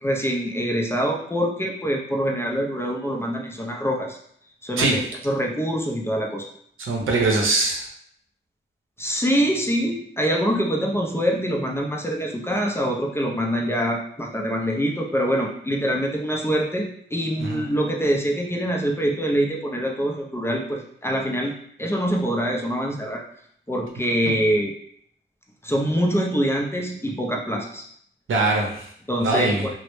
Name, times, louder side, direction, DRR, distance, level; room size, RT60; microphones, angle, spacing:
voice 1, 0.0-4.2 4.6-6.5 9.0-23.2 23.7-24.7 25.6-27.8 29.1-29.7, equal, 10° left, -1 dB, 0.4 m, -24 dB
voice 2, 6.8-7.9 17.4-17.7 28.3-28.9 29.2-29.7, right 2 dB, 80° right, -1 dB, 0.6 m, -22 dB
2.0 x 2.0 x 3.0 m, 0.66 s
cardioid pair, 70°, 21 cm